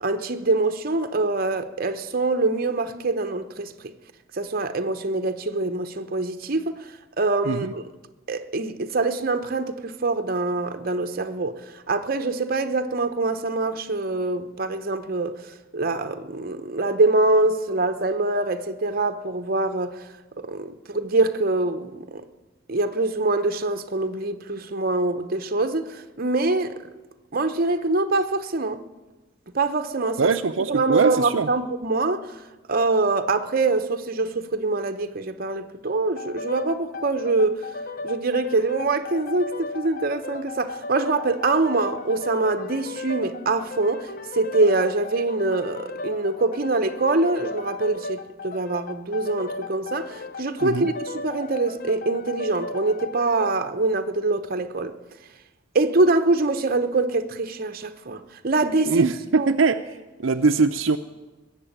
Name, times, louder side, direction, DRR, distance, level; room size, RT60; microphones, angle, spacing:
voice 1, 0.0-3.7 4.4-6.8 7.2-7.8 8.3-11.6 11.9-15.4 15.7-19.9 20.4-22.2 22.7-26.8 27.3-28.8 29.5-30.3 30.7-32.3 32.7-37.6 38.0-54.9 55.7-59.1 59.3-59.5, right 3 dB, 45° right, 0.9 m, -24 dB
voice 2, 30.2-31.5 50.6-50.9 58.9-59.8 60.2-61.0, right 4 dB, 70° right, 0.6 m, -22 dB
sound 1, 36.2-53.6, left 3 dB, 45° left, 0.6 m, -36 dB
20.5 x 7.5 x 8.9 m
head